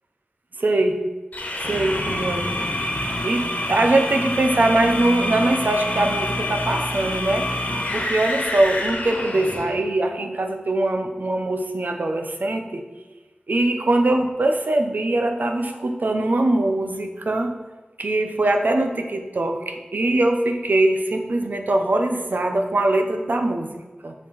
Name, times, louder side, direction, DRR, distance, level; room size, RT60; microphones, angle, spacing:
voice 1, 0.6-1.0 1.7-2.9 3.2-3.4 3.7-7.5 7.9-12.8 13.5-17.6 18.0-23.7 24.0-24.1, right 2 dB, 70° right, 4 dB, 0.9 m, -22 dB
sound 1, 1.3-9.8, left 1 dB, 60° left, 1.3 m, -27 dB
7.4 x 4.4 x 5.7 m, 1.3 s
wide cardioid pair, 50°, 3 cm